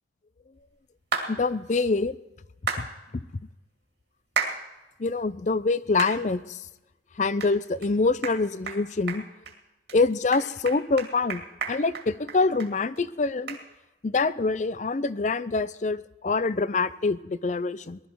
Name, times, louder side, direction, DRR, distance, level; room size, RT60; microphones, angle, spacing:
sound 1, 1.1-1.3 2.7-2.8 4.4-4.6 5.1-5.2 6.0-6.2 6.6-6.7 7.4-7.5 7.8-7.9 8.2-8.4 8.7-8.8 9.1-9.5 9.9-10.0 10.3-12.7 13.0-13.1 13.5-13.6, right 5 dB, 65° right, 2.2 m, -31 dB
voice 1, 1.3-2.2 2.8-2.9 3.1-3.2 5.0-6.6 7.2-9.2 9.9-13.6 14.0-18.0, left 3 dB, 40° left, 17 dB, 0.5 m, -25 dB
19.5 x 12.5 x 4.6 m, 1.0 s
head